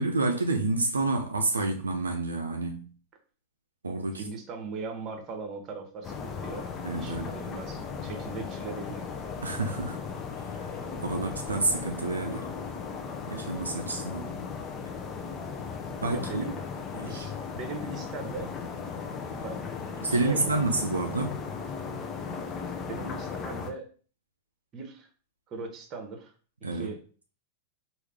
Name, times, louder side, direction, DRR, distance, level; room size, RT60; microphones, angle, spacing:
voice 1, 0.0-2.9 3.8-4.3 6.8-7.3 9.4-10.0 10.5-12.5 13.3-14.3 16.0-16.4 17.0-17.3 20.0-21.5 26.6-26.9, right 2 dB, 75° right, 0.5 m, -29 dB
voice 2, 4.1-6.7 7.0-9.1 16.1-16.6 17.0-18.5 19.3-19.6 20.1-20.5 22.8-23.9 24.7-25.1 25.5-26.3 26.7-27.0, right 4 dB, 30° right, 1.0 m, -39 dB
sound 1, 6.0-23.7, left 5 dB, 25° left, 0.6 m, -37 dB
4.7 x 2.6 x 3.3 m
figure-of-eight pair, 90°, 0 cm